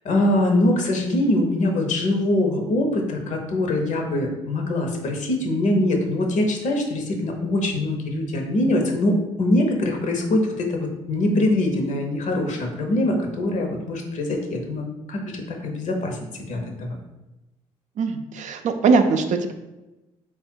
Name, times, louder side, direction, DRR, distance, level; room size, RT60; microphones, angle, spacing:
voice 1, 0.0-16.9, left 1 dB, 55° left, 3 dB, 0.9 m, -23 dB
voice 2, 18.0-19.5, right 4 dB, 55° right, 6 dB, 0.4 m, -21 dB
3.4 x 2.4 x 4.4 m, 1.0 s
hypercardioid pair, 60°, 15 cm